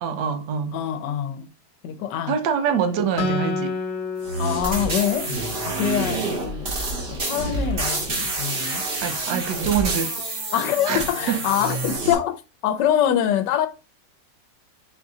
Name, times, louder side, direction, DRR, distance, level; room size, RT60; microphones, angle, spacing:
voice 1, 0.0-0.8 2.3-3.8 9.0-10.2 10.9-11.4, right 7 dB, 80° right, 1.2 m, -25 dB
voice 2, 0.7-1.5 1.8-2.4 4.4-5.3 5.6-6.8 7.1-8.9 10.5-13.7, left 10 dB, 85° left, 1.2 m, -24 dB
Acoustic guitar, 3.2-6.6, left 3 dB, 55° left, 0.8 m, -30 dB
sound 1, 4.2-12.1, right 2 dB, 40° right, 1.1 m, -28 dB
4.4 x 2.7 x 3.5 m
omnidirectional pair, 1.8 m